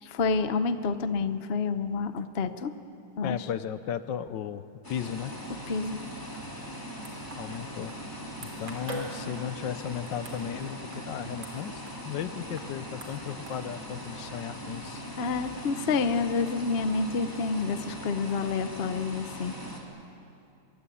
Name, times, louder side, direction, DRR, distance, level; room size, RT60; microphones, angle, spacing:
voice 1, 0.1-2.7 3.2-3.5 5.7-6.0 15.2-19.5, left 4 dB, 45° left, 10 dB, 0.9 m, -28 dB
voice 2, 3.2-5.3 7.4-7.9 8.4-11.7 12.1-15.1, left 9 dB, 70° left, 13 dB, 1.4 m, -35 dB
sound 1, 4.8-19.8, equal, 10° left, 3.1 m, -40 dB
sound 2, 5.9-18.4, right 2 dB, 80° right, 4.0 m, -48 dB
24.5 x 22.5 x 8.5 m, 2.6 s
omnidirectional pair, 2.1 m